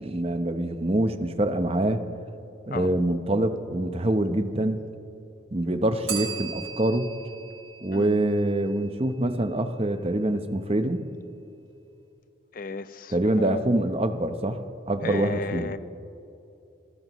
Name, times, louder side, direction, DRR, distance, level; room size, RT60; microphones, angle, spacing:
voice 1, 0.0-2.0 2.7-4.8 5.5-7.1 7.8-11.0 13.1-15.7, right 1 dB, 30° right, 0.8 m, -25 dB
Bell, 6.1-8.9, right 7 dB, 65° right, 3.1 m, -37 dB
voice 2, 12.5-13.6 15.0-15.8, left 3 dB, 45° left, 0.5 m, -33 dB
26.5 x 15.0 x 3.1 m
head